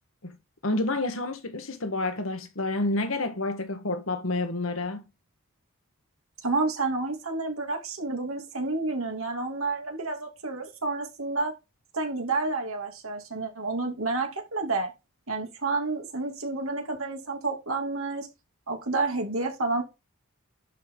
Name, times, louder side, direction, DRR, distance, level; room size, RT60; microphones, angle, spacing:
voice 1, 0.6-5.0, left 2 dB, 70° left, 1.6 m, -29 dB
voice 2, 6.4-11.5 11.9-14.9 15.3-18.3 18.7-19.8, right 3 dB, 80° right, 2.9 m, -30 dB
11.0 x 5.6 x 3.9 m
head